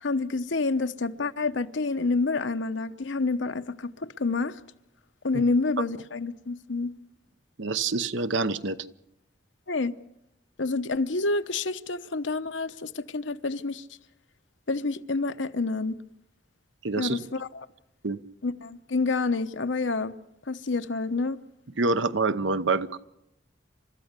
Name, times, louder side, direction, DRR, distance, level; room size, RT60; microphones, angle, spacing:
voice 1, 0.0-4.6 5.2-6.9 9.7-9.9 10.6-13.8 14.7-16.0 17.0-17.7 18.4-20.1 20.5-21.4, left 3 dB, 85° left, 0.9 m, -28 dB
voice 2, 7.6-8.8 16.8-17.2 18.0-18.2 21.8-23.0, right 3 dB, 85° right, 0.9 m, -26 dB
30.0 x 13.5 x 8.2 m
head